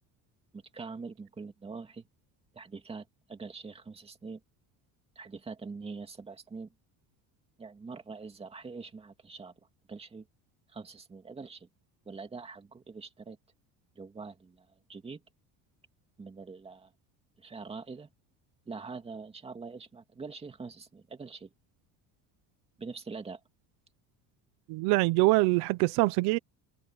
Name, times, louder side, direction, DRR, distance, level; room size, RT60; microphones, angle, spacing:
voice 1, 0.5-2.0 2.5-4.4 5.2-6.7 7.6-9.5 9.9-10.3 10.7-11.7 12.1-13.4 14.0-15.2 16.2-16.9 17.4-18.1 18.7-21.5 22.8-23.4, right 4 dB, 15° right, 2.5 m, -44 dB
voice 2, 24.7-26.4, right 22 dB, 80° right, 0.9 m, -24 dB
cardioid pair, 160°, 37 cm